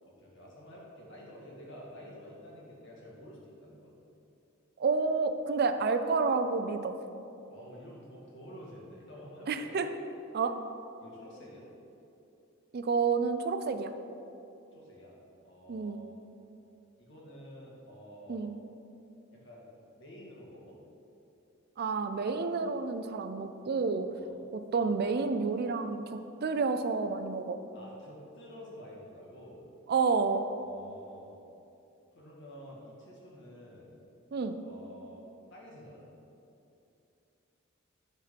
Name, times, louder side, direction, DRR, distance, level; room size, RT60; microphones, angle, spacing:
voice 1, 0.0-3.9 7.5-9.8 11.0-11.7 14.7-16.1 17.0-18.5 19.3-20.8 24.2-24.3 27.7-29.7 30.6-31.4 32.1-34.0 34.6-35.2 35.5-36.0, equal, 60° left, -4 dB, 2.0 m, -50 dB
voice 2, 4.8-7.0 9.5-9.9 10.3-10.6 12.7-13.9 15.7-16.0 18.3-18.5 21.8-24.1 24.5-27.6 29.9-30.4 34.3-34.6, right 4 dB, 50° right, 9 dB, 0.4 m, -29 dB
11.0 x 4.4 x 5.1 m, 2.8 s
head